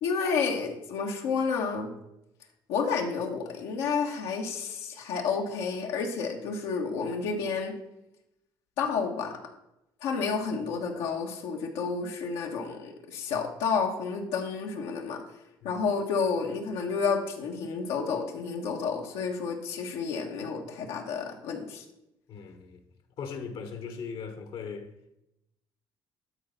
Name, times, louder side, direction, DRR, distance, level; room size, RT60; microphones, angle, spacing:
voice 1, 0.0-1.9 2.7-7.8 8.8-9.4 10.0-15.2 15.6-21.8, left 5 dB, 85° left, 1.4 m, -30 dB
voice 2, 22.3-22.8 23.2-24.9, left 5 dB, 65° left, 1.3 m, -39 dB
11.5 x 4.1 x 5.7 m
cardioid pair, 90°, 9 cm